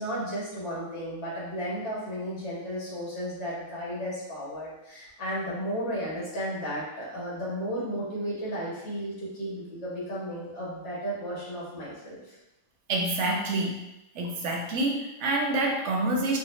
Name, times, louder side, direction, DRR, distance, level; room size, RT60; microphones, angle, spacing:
voice 1, 0.0-12.4, equal, 60° left, -7 dB, 1.4 m, -34 dB
voice 2, 12.9-13.8 14.1-16.4, right 2 dB, 65° right, 0 dB, 0.9 m, -27 dB
3.3 x 2.1 x 3.0 m, 0.94 s
omnidirectional pair, 1.4 m